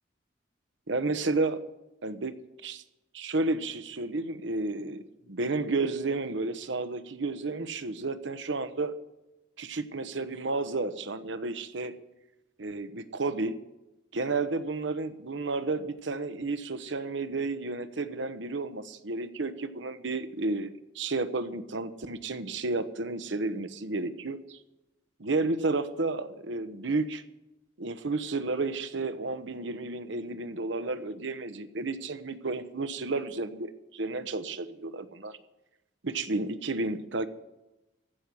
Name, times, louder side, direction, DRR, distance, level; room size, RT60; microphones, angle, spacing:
voice 1, 0.9-1.6 2.0-2.8 3.1-8.9 9.6-11.9 12.6-13.6 14.1-24.6 25.2-27.2 27.8-35.3 36.0-37.3, right 3 dB, 75° right, 11 dB, 1.0 m, -32 dB
15.5 x 6.2 x 9.7 m, 0.98 s
head